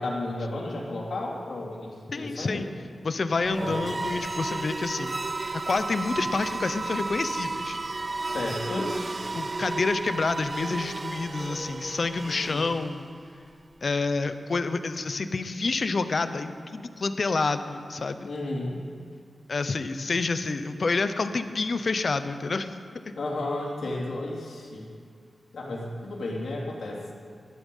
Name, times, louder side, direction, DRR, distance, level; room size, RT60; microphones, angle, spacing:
voice 1, 0.0-2.7 3.6-4.0 8.3-8.9 12.2-12.7 18.2-18.8 23.1-24.9 25.5-27.1, left 2 dB, 75° left, -3 dB, 3.4 m, -33 dB
voice 2, 2.1-2.7 3.0-5.2 5.7-7.8 9.3-13.1 13.8-18.3 19.5-22.8 23.0-23.1, left 3 dB, 45° left, 10 dB, 0.8 m, -28 dB
sound 1, 3.4-13.3, right 3 dB, 30° right, 0.4 m, -33 dB
20.0 x 12.5 x 5.6 m, 2.2 s
wide cardioid pair, 170°, 0 cm